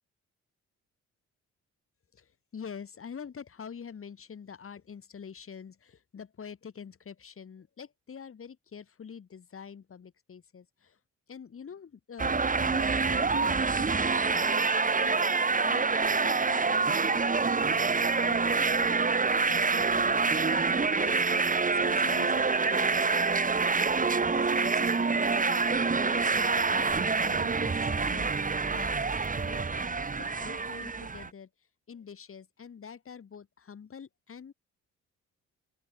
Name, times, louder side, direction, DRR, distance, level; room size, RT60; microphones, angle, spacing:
voice 1, 2.1-11.0 11.3-15.4 15.6-17.9 18.3-18.9 19.3-23.1 24.2-31.5 31.9-34.5, left 7 dB, 45° left, 7.8 m, -46 dB
sound 1, 12.2-31.3, right 4 dB, 25° right, 2.5 m, -26 dB
open air
cardioid pair, 90°, 30 cm